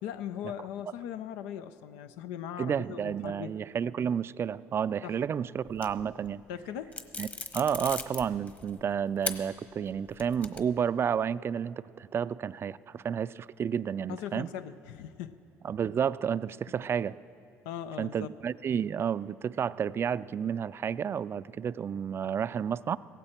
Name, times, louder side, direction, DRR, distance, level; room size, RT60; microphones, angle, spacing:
voice 1, 0.0-3.5 5.0-5.2 6.5-7.0 14.1-15.4 17.7-18.3, left 10 dB, 90° left, 11 dB, 0.5 m, -39 dB
voice 2, 2.6-6.4 7.2-7.3 7.5-14.5 15.6-17.1 18.0-23.0, right 8 dB, 40° right, 18 dB, 0.3 m, -31 dB
sound 1, 5.7-6.3 6.9-8.7 9.2-9.4 9.8-10.8, left 3 dB, 25° left, 1.2 m, -38 dB
16.5 x 15.0 x 4.4 m, 2.6 s
supercardioid pair, 75°, 6 cm